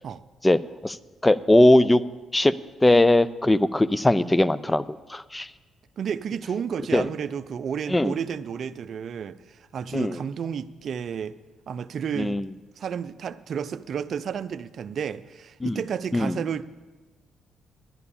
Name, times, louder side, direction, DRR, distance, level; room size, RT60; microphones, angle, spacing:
voice 1, 0.4-1.0 1.2-2.0 2.3-2.5 2.8-5.5 6.9-7.1 7.9-8.1 9.9-10.2 12.2-12.5 15.6-15.8 16.1-16.4, left 1 dB, 15° left, 17 dB, 0.5 m, -20 dB
voice 2, 6.0-11.3 11.7-12.4 12.8-16.6, right 7 dB, 60° right, 12 dB, 0.5 m, -31 dB
11.0 x 11.0 x 7.0 m, 1.3 s
cardioid pair, 90°, 0 cm